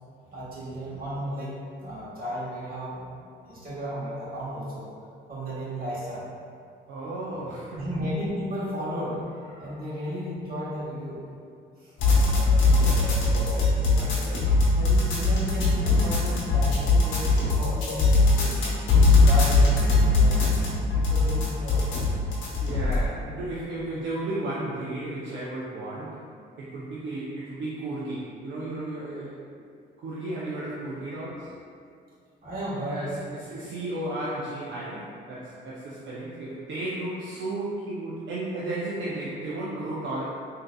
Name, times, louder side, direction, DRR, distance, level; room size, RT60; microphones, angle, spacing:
voice 1, 0.3-3.1 3.4-4.9 5.3-6.2 7.7-11.2 11.8-11.9 13.6-14.1 14.5-18.7 19.1-21.9 32.4-33.1, equal, 45° right, -9 dB, 1.3 m, -34 dB
voice 2, 6.9-7.9 12.0-14.7 22.6-26.2 26.6-29.4 30.0-31.5 32.9-40.2, right 2 dB, 70° right, -7 dB, 0.6 m, -34 dB
sound 1, 12.0-23.0, left 3 dB, 85° left, 0.8 m, -20 dB
3.7 x 2.7 x 2.2 m, 2.4 s
cardioid pair, 90°, 20 cm